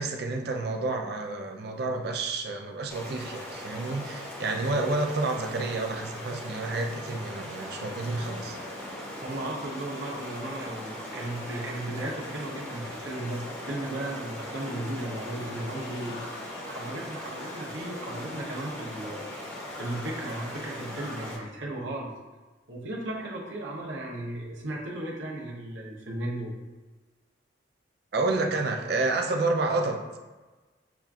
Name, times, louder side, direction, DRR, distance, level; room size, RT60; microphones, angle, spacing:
voice 1, 0.0-8.6 28.1-30.0, right 3 dB, 55° right, 3 dB, 0.4 m, -29 dB
Stream, 2.9-21.4, left 1 dB, 10° left, 0.6 m, -40 dB
sound 1, 7.7-21.5, left 2 dB, 75° left, 0.6 m, -45 dB
voice 2, 9.2-16.2 16.6-19.2 19.7-22.1 22.7-26.6, right 1 dB, 75° right, -3 dB, 0.8 m, -35 dB
7.0 x 2.5 x 2.3 m, 1.2 s
head